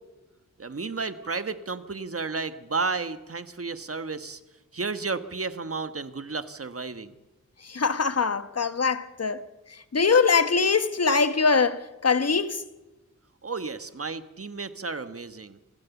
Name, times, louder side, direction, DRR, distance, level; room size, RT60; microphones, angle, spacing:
voice 1, 0.6-4.4 4.7-7.1 13.4-15.6, right 4 dB, 50° right, 1.4 m, -32 dB
voice 2, 7.6-9.4 9.9-12.6, left 5 dB, 55° left, 1.3 m, -23 dB
26.5 x 16.5 x 7.2 m
wide cardioid pair, 65°, 31 cm